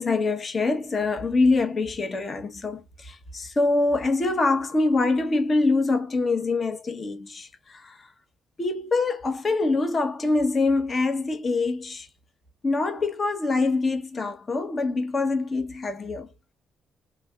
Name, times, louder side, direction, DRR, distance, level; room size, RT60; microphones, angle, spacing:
voice 1, 0.0-8.1 8.6-12.1 12.6-16.3, left 3 dB, 40° left, 0.9 m, -24 dB
3.3 x 3.3 x 2.2 m
cardioid pair, 90°, 0 cm